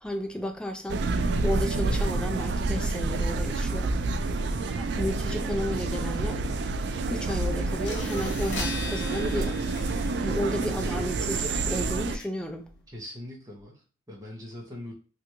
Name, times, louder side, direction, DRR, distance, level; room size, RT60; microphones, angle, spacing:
voice 1, 0.0-1.0 1.4-3.9 4.8-6.4 7.1-12.7, equal, 5° left, 0.4 m, -33 dB
sound 1, 0.9-12.2, right 3 dB, 70° right, 0.3 m, -28 dB
sound 2, 7.4-7.5 7.8-12.8, left 4 dB, 85° left, 0.7 m, -41 dB
voice 2, 12.9-14.9, left 1 dB, 20° right, 0.9 m, -43 dB
3.3 x 2.5 x 2.9 m
head